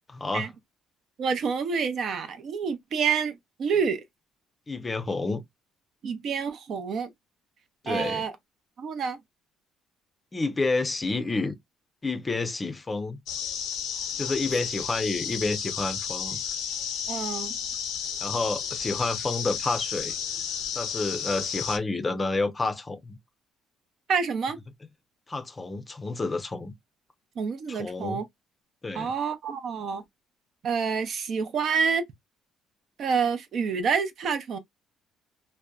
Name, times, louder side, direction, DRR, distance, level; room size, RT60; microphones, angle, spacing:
voice 1, 0.1-0.5 4.7-5.4 7.8-8.2 10.3-11.5 12.0-13.2 14.2-16.4 18.2-20.1 20.8-23.2 25.3-26.7 27.7-28.2 28.8-29.1, left 3 dB, 20° left, 0.5 m, -29 dB
voice 2, 1.2-4.0 6.0-7.1 7.9-8.3 8.8-9.2 17.1-17.5 24.1-24.6 27.4-28.2 28.9-30.0 30.6-32.0 33.0-34.6, right 6 dB, 55° right, 0.5 m, -28 dB
sound 1, 13.3-21.8, left 8 dB, 80° left, 0.5 m, -32 dB
2.6 x 2.1 x 2.3 m
cardioid pair, 105°, 0 cm